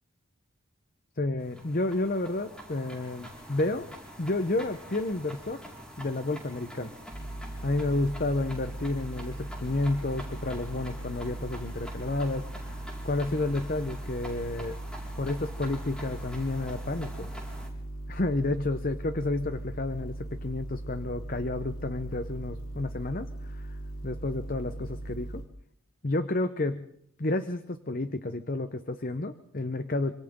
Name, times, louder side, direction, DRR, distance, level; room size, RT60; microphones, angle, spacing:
voice 1, 1.2-3.9 4.2-5.6 6.0-6.9 7.6-14.8 15.2-17.3 18.1-23.8 24.0-25.4 26.0-26.8 27.2-30.1, left 2 dB, 40° left, 10 dB, 0.9 m, -31 dB
sound 1, 1.4-17.7, equal, 5° left, 4.9 m, -46 dB
sound 2, 7.1-25.5, right 1 dB, 80° left, 4.2 m, -39 dB
27.5 x 26.0 x 3.8 m, 0.66 s
head